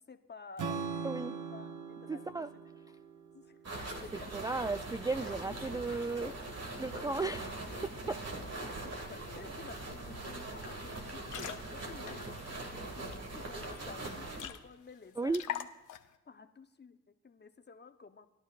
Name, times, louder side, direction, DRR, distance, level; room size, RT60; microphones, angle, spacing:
voice 1, 0.0-0.9 1.3-2.5 3.3-3.6 4.0-4.4 8.1-15.7 16.3-17.0 17.2-18.3, left 4 dB, 30° left, 8 dB, 0.9 m, -52 dB
Strum, 0.6-4.8, right 5 dB, 65° right, 0.9 m, -42 dB
voice 2, 1.0-1.4 2.1-2.5 4.3-6.3 6.8-8.0 15.2-15.4, right 3 dB, 10° right, 11 dB, 0.3 m, -35 dB
sound 1, 3.6-14.5, right 2 dB, 45° right, 2.1 m, -42 dB
sound 2, 9.5-9.6 9.9-10.1 10.4-10.6 11.1-13.2 13.6-13.7 14.0-14.1 14.3-14.9 15.3-16.2, left 10 dB, 65° left, 0.8 m, -43 dB
20.0 x 11.0 x 2.5 m, 0.97 s
supercardioid pair, 50°, 34 cm